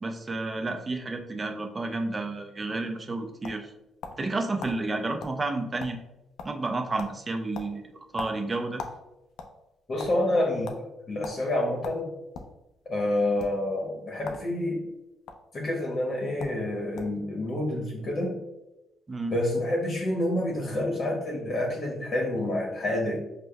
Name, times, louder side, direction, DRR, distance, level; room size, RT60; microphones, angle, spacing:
voice 1, 0.0-3.7 4.2-6.0 6.4-7.8 8.1-8.8 19.1-19.3, right 2 dB, 25° right, 4 dB, 0.4 m, -31 dB
sound 1, 2.9-4.3 4.6-4.8 5.2-5.4 5.6-6.1 6.4-6.7 7.0-7.2 7.5-9.0 9.3-10.1 10.6-10.8 11.2-11.4 11.8-12.5 13.3-13.5 14.2-14.5 14.8-15.3 16.1-16.2 16.4-16.6 17.0-17.2, left 5 dB, 85° left, 0.4 m, -39 dB
voice 2, 9.9-12.1 12.9-14.8 15.5-18.4 19.3-23.2, left 1 dB, 45° left, -1 dB, 0.8 m, -28 dB
5.0 x 2.0 x 2.2 m, 0.95 s
cardioid pair, 90°, 0 cm